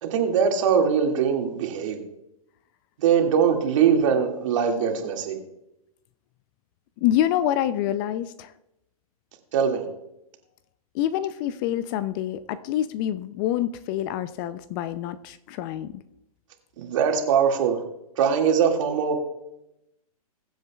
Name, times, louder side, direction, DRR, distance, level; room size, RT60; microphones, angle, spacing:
voice 1, 0.0-2.0 3.0-5.4 9.5-9.9 16.8-17.8 18.2-19.2, right 7 dB, 55° right, 2 dB, 2.2 m, -22 dB
voice 2, 7.0-8.5 10.9-16.0, left 11 dB, 35° left, 15 dB, 0.5 m, -26 dB
21.5 x 7.8 x 2.4 m, 0.85 s
hypercardioid pair, 115°, 19 cm